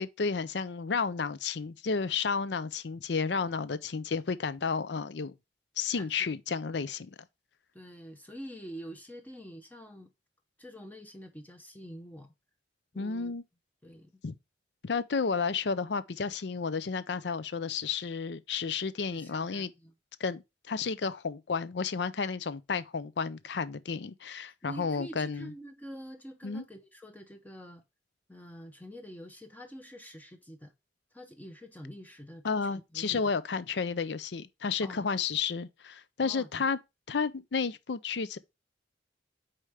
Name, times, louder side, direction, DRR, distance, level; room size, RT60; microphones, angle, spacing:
voice 1, 0.0-5.3 5.8-7.1 13.0-13.4 14.2-14.4 14.8-19.7 20.2-25.5 26.4-26.6 32.4-36.8 37.1-38.4, left 5 dB, 70° left, 0.6 m, -32 dB
voice 2, 6.0-6.3 7.7-10.1 10.6-12.3 12.9-13.4 13.8-14.2 19.1-19.9 24.7-27.8 28.3-30.7 31.1-33.2 34.8-35.1 36.2-36.6, equal, 10° left, 0.7 m, -46 dB
4.9 x 4.4 x 4.9 m
head